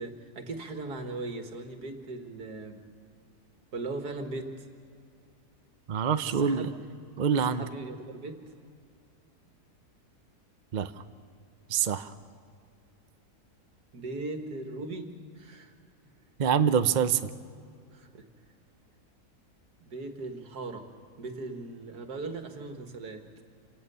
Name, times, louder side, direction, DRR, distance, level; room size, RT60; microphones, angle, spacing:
voice 1, 0.0-2.8 3.7-4.7 6.3-6.7 7.5-8.4 13.9-15.7 17.9-18.3 19.8-20.9 21.2-23.2, right 3 dB, 80° right, 5 dB, 2.2 m, -38 dB
voice 2, 5.9-6.7 7.2-7.6 10.7-10.9 11.7-12.1 16.4-17.3, right 7 dB, 50° right, 10 dB, 0.5 m, -25 dB
27.5 x 18.0 x 6.9 m, 2.3 s
omnidirectional pair, 1.7 m